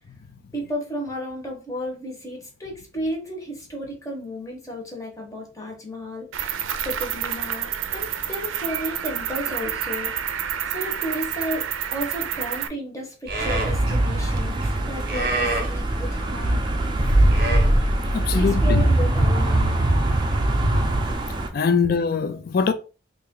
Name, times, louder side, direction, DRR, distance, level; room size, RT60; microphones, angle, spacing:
voice 1, 0.5-6.3 6.8-10.1 10.7-16.6 18.3-19.8, equal, 15° left, 1.0 m, -33 dB
Cricket, 6.3-12.7, right 9 dB, 85° right, 0.4 m, -29 dB
Livestock farm animals working animals, 13.3-21.1, right 1 dB, 50° right, 0.9 m, -22 dB
sound 1, 13.4-21.5, right 2 dB, 25° right, 0.5 m, -29 dB
voice 2, 18.0-18.9 20.4-21.0 21.5-22.7, left 5 dB, 50° left, 0.4 m, -23 dB
3.3 x 2.5 x 3.6 m
head